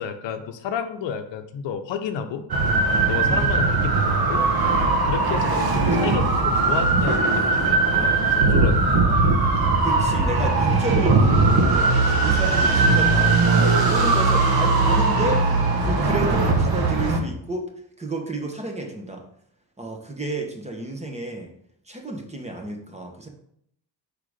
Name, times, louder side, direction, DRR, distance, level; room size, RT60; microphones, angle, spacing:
voice 1, 0.0-2.5 3.1-4.4 5.0-9.3 12.2-12.3, left 7 dB, 80° left, 8 dB, 0.7 m, -31 dB
sound 1, 2.5-17.2, right 3 dB, 55° right, 1.2 m, -19 dB
voice 2, 9.8-17.7 18.0-19.2 19.8-21.5 21.9-23.3, right 2 dB, 15° right, 3 dB, 1.0 m, -31 dB
4.9 x 3.8 x 4.9 m, 0.70 s
cardioid pair, 115°, 43 cm